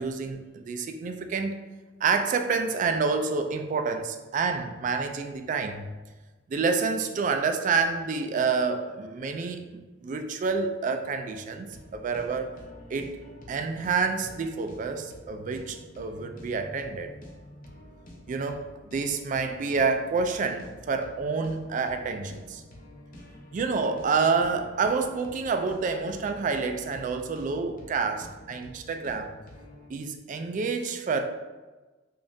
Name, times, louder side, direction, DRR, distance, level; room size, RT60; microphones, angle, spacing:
voice 1, 0.0-1.6 2.0-5.9 6.5-12.5 12.9-13.2 13.5-17.1 18.3-18.7 18.9-22.6 23.5-29.3 29.9-31.2, right 4 dB, 45° right, 7 dB, 0.3 m, -28 dB
sound 1, 11.7-29.9, equal, 50° left, 0.7 m, -48 dB
5.0 x 2.4 x 2.6 m, 1.2 s
head